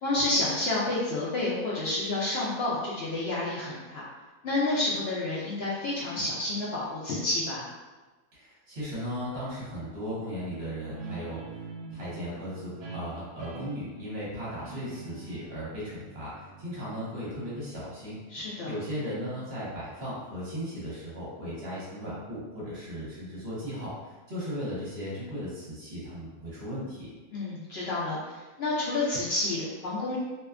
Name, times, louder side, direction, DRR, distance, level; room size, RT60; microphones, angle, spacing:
voice 1, 0.0-4.0 4.4-7.7 18.3-18.7 27.3-30.2, left 2 dB, 75° left, -7 dB, 0.5 m, -29 dB
voice 2, 8.3-11.6 11.9-18.2 18.6-27.1, equal, 50° right, -8 dB, 1.0 m, -36 dB
Guitar, 10.8-18.0, right 4 dB, 70° right, 0.9 m, -44 dB
2.6 x 2.2 x 2.3 m, 1.2 s
omnidirectional pair, 1.6 m